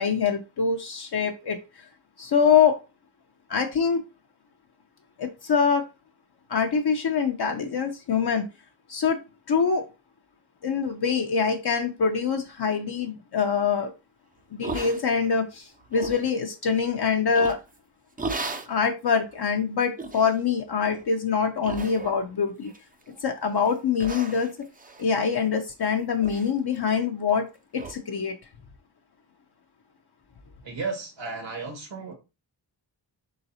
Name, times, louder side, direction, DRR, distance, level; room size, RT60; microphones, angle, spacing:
voice 1, 0.0-1.6 2.2-2.7 3.5-4.0 5.2-5.8 6.5-8.4 8.9-9.2 9.5-9.8 10.6-13.9 14.5-15.6 15.9-17.6 18.7-22.7 23.2-24.5 25.0-27.4 27.7-28.3, left 6 dB, 55° left, 0.7 m, -24 dB
sound 1, 14.6-15.4 15.8-16.3 17.3-17.8 18.2-18.7 19.3-19.4 20.0-20.4 20.8-21.1 21.6-22.3 22.7-23.2 23.6-23.7 24.0-25.8 26.2-26.5 26.8-26.9 27.3-27.4 27.8-27.9, right 3 dB, 20° right, 0.5 m, -36 dB
voice 2, 30.6-32.1, right 4 dB, 70° right, 1.8 m, -34 dB
4.0 x 3.9 x 2.7 m
cardioid pair, 55°, 46 cm